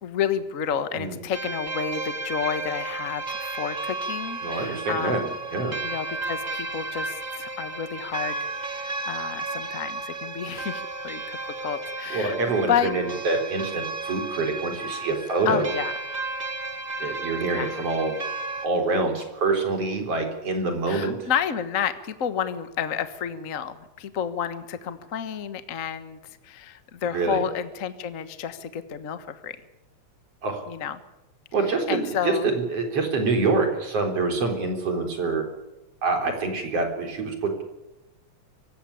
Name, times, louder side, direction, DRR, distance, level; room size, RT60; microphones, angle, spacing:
voice 1, 0.0-5.3 5.8-12.4 12.7-12.9 15.4-15.9 17.4-17.7 20.9-26.2 26.4-29.6 30.7-31.0 31.9-32.5, left 8 dB, 50° left, 11 dB, 1.0 m, -30 dB
sound 1, 1.3-18.7, right 3 dB, 20° right, 1.2 m, -33 dB
voice 2, 4.4-5.2 5.5-5.8 12.1-15.7 17.0-18.2 18.6-21.2 27.1-27.4 30.4-30.6 31.5-35.4 36.0-37.6, right 3 dB, 55° right, 4 dB, 4.9 m, -26 dB
24.5 x 16.0 x 10.0 m, 0.98 s
omnidirectional pair, 3.4 m